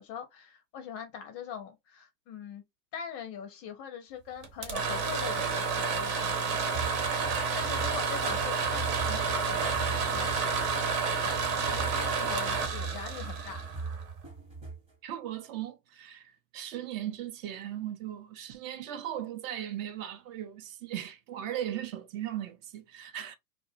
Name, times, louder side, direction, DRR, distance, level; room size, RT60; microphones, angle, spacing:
voice 1, 0.0-2.6 2.9-6.8 7.5-10.7 11.1-13.7, left 8 dB, 30° left, 0.4 m, -42 dB
sound 1, 4.4-14.2, right 5 dB, 70° right, 1.0 m, -30 dB
sound 2, 6.7-14.9, right 4 dB, 10° right, 0.7 m, -40 dB
voice 2, 15.0-23.4, right 11 dB, 55° right, 0.5 m, -38 dB
2.4 x 2.0 x 2.6 m
hypercardioid pair, 100°, 50 cm